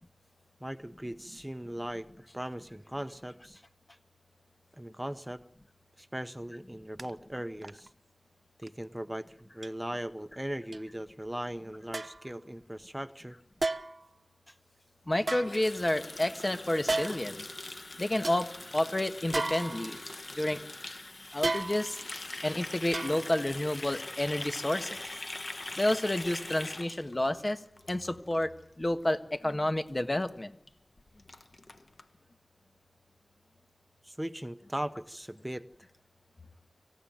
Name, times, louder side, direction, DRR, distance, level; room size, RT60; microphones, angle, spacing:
voice 1, 0.6-2.1 2.3-3.6 4.8-5.4 6.0-7.9 8.6-13.4 34.0-35.7, right 1 dB, 15° right, 11 dB, 0.8 m, -39 dB
sound 1, 7.0-7.1 7.6-7.9 8.6-8.7 9.6-9.7 10.7-10.8 11.9-12.3 13.6-14.1 15.2-16.1 16.9-17.4 17.8-17.9 18.2-18.4 19.3-20.2 21.4-22.1 22.9-23.5 23.8-23.9, right 2 dB, 65° right, 0.9 m, -34 dB
voice 2, 15.1-17.4 18.0-20.0 20.3-20.6 21.3-22.0 22.4-25.0 25.8-27.6 27.9-30.6, left 1 dB, 40° left, 7 dB, 1.5 m, -30 dB
Water tap faucet, 15.4-28.4 28.7-29.0 29.3-29.6 29.9-30.0 30.2-30.3 30.7-30.8 31.0-32.0, left 2 dB, 70° left, 1.3 m, -42 dB
25.5 x 15.5 x 9.2 m, 0.80 s
wide cardioid pair, 50°, 0 cm